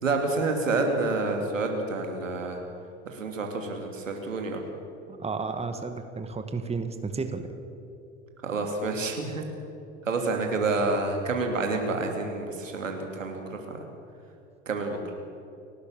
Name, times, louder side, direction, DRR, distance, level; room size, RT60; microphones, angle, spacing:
voice 1, 0.0-2.6 3.1-4.6 8.4-9.4 10.0-13.8 14.7-15.0, right 3 dB, 80° right, 3 dB, 2.8 m, -28 dB
voice 2, 5.1-7.5, right 4 dB, 15° right, 7 dB, 1.7 m, -32 dB
29.0 x 12.0 x 7.5 m, 2.7 s
figure-of-eight pair, 70°, 38 cm